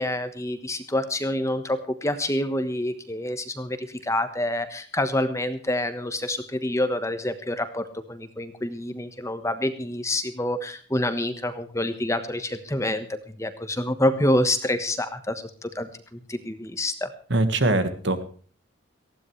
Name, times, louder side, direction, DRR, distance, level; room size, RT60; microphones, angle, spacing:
voice 1, 0.0-17.1, left 1 dB, 15° left, 9 dB, 1.3 m, -27 dB
voice 2, 17.3-18.2, right 2 dB, 60° right, 9 dB, 1.7 m, -22 dB
19.0 x 15.5 x 3.3 m, 0.42 s
head